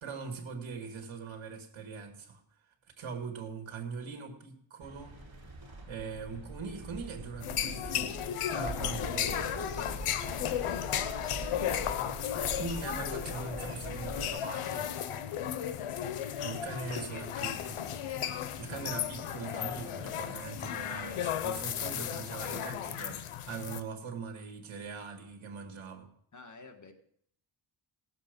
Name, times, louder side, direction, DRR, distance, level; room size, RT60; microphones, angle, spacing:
voice 1, 0.0-2.4 3.0-5.2 5.9-8.2 8.5-9.5 12.3-14.9 16.4-17.8 18.6-26.1, right 5 dB, 65° right, 5 dB, 2.2 m, -41 dB
sound 1, 4.8-14.3, right 2 dB, 45° right, 2.9 m, -44 dB
sound 2, 7.4-23.8, left 10 dB, 85° left, 0.9 m, -35 dB
voice 2, 8.8-11.8 16.9-17.6 26.3-26.9, left 3 dB, 35° left, 5 dB, 1.8 m, -48 dB
18.0 x 7.3 x 5.3 m, 0.66 s
wide cardioid pair, 100°, 49 cm